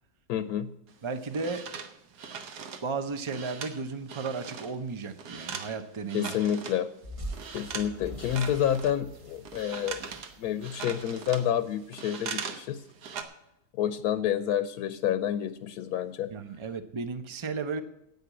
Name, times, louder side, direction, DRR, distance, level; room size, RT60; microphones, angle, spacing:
voice 1, 0.3-0.7 6.1-6.9 7.5-10.0 10.4-12.8 13.8-16.3, left 10 dB, 80° left, 13 dB, 1.1 m, -29 dB
sound 1, 0.9-6.8 7.2-7.9 8.2-12.7 12.9-13.2, right 6 dB, 85° right, 1.7 m, -40 dB
voice 2, 1.0-1.6 2.8-6.4 16.3-17.8, right 4 dB, 45° right, 9 dB, 0.3 m, -34 dB
sound 2, 7.0-11.4, equal, 30° right, 0.7 m, -43 dB
9.3 x 8.7 x 8.1 m, 0.82 s
omnidirectional pair, 1.7 m